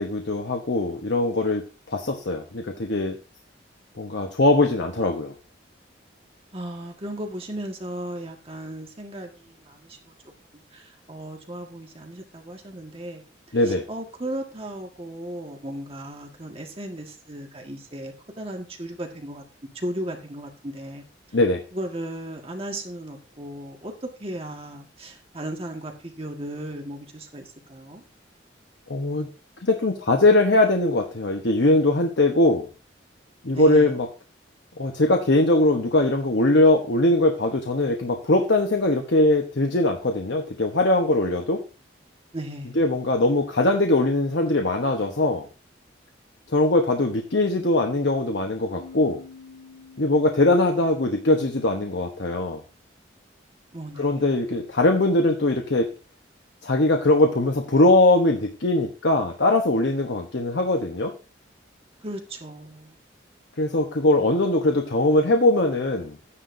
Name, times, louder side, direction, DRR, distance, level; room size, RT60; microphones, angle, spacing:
voice 1, 0.0-1.6 1.9-3.2 4.0-5.3 13.5-13.8 21.3-21.6 28.9-29.3 29.6-32.7 33.4-34.1 34.8-41.6 42.8-45.5 46.5-49.2 50.0-52.6 54.0-55.9 56.6-61.1 63.6-66.2, left 2 dB, 70° left, 3 dB, 1.0 m, -21 dB
voice 2, 6.5-19.4 19.7-21.4 21.7-28.0 33.5-33.9 42.3-42.9 53.7-54.5 62.0-63.0, right 1 dB, 30° right, 2 dB, 1.5 m, -36 dB
sound 1, 48.8-52.4, left 5 dB, 55° left, 6.3 m, -49 dB
13.0 x 9.9 x 2.6 m, 0.33 s
head